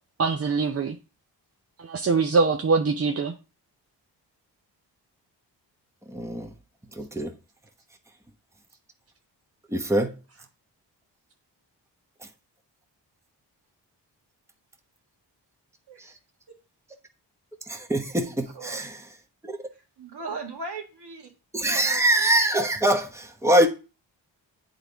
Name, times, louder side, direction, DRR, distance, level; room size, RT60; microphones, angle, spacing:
voice 1, 0.2-1.0 1.8-3.3, right 4 dB, 35° right, 0.6 m, -23 dB
voice 2, 6.1-6.5 6.9-7.3 9.7-10.2 16.0-16.1 17.7-19.0 19.5-19.6 21.5-23.7, right 1 dB, 5° right, 1.1 m, -23 dB
voice 3, 18.5-18.9 20.0-21.3 21.7-22.0, right 3 dB, 60° right, 1.8 m, -37 dB
8.1 x 3.9 x 3.4 m
supercardioid pair, 45°, 44 cm